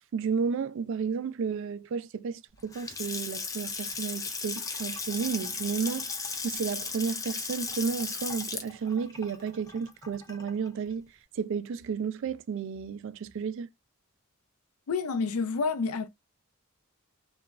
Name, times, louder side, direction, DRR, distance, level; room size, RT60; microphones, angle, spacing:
voice 1, 0.1-6.1 6.4-11.1 11.3-13.7, right 6 dB, 60° right, 0.3 m, -32 dB
Water tap faucet / Sink (filling or washing) / Splash splatter, 2.6-10.7, left 4 dB, 15° left, 0.3 m, -36 dB
voice 2, 14.9-16.1, left 4 dB, 85° left, 0.5 m, -29 dB
2.9 x 2.3 x 2.3 m
head